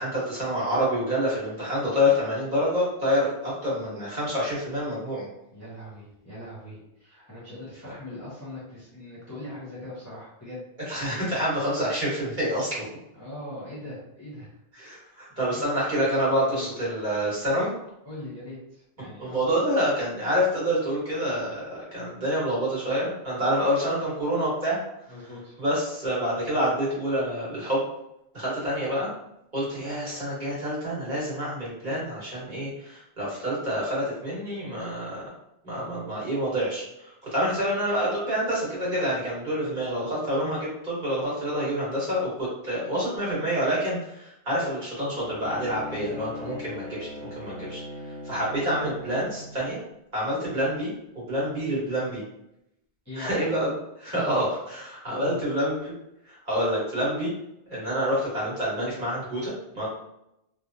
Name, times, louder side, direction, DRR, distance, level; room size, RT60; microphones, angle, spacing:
voice 1, 0.0-5.3 10.9-12.8 14.8-17.7 19.0-24.8 25.6-27.8 28.3-29.1 29.5-35.2 35.6-47.1 47.4-47.8 48.2-49.8 50.1-50.9 51.3-52.2 53.2-53.7 54.0-55.9 56.3-57.3 57.7-59.9, equal, 45° right, -7 dB, 1.4 m, -27 dB
voice 2, 5.5-10.6 13.1-14.5 14.9-15.7 16.2-16.7 18.0-19.4 25.1-25.6 29.6-29.8 35.7-35.9 53.0-53.4 54.1-54.2 55.0-55.4, left 1 dB, 15° left, -8 dB, 0.9 m, -41 dB
Bowed string instrument, 45.1-49.8, left 2 dB, 55° left, 0.4 m, -40 dB
3.1 x 2.1 x 2.6 m, 0.82 s
omnidirectional pair, 1.1 m